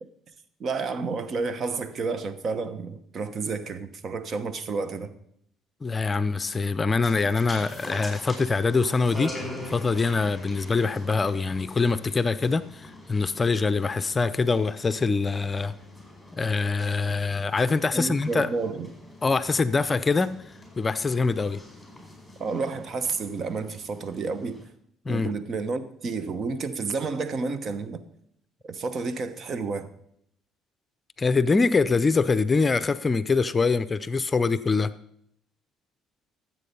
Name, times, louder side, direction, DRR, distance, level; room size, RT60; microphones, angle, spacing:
voice 1, 0.6-5.1 17.9-18.9 22.4-24.6 25.1-28.0 28.6-29.9, right 4 dB, 50° right, 1.0 m, -30 dB
voice 2, 5.8-9.3 9.7-15.7 16.4-18.5 19.2-20.3 20.8-21.6 25.1-25.3 31.2-34.9, left 4 dB, 30° left, 0.5 m, -24 dB
sound 1, 7.0-24.7, left 1 dB, ahead, 5.0 m, -44 dB
14.0 x 7.6 x 5.4 m
supercardioid pair, 75°, 0 cm